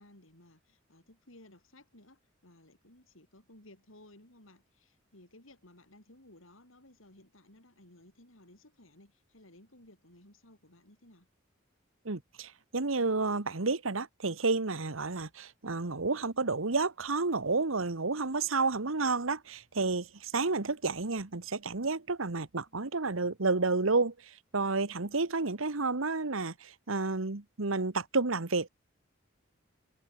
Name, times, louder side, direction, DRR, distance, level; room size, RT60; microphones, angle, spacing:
voice 1, 0.0-11.3, left 1 dB, 80° left, 7.3 m, -58 dB
voice 2, 12.0-28.7, right 3 dB, 85° right, 1.5 m, -31 dB
head